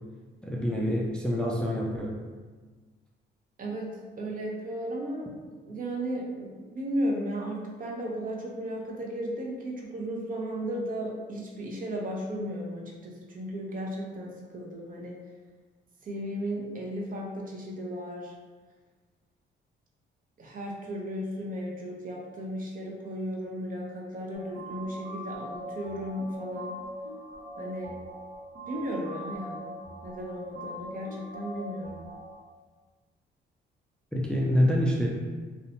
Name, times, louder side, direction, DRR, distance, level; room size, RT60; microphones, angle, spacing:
voice 1, 0.4-2.2 34.1-35.1, equal, 5° left, -3 dB, 0.3 m, -26 dB
voice 2, 3.6-5.3 5.6-15.2 16.0-18.3 20.4-26.8 27.6-27.9 28.7-32.0, equal, 45° right, -1 dB, 0.6 m, -35 dB
sound 1, 24.3-32.3, equal, 65° right, 0.9 m, -41 dB
2.6 x 2.1 x 2.7 m, 1.4 s
cardioid pair, 90°, 20 cm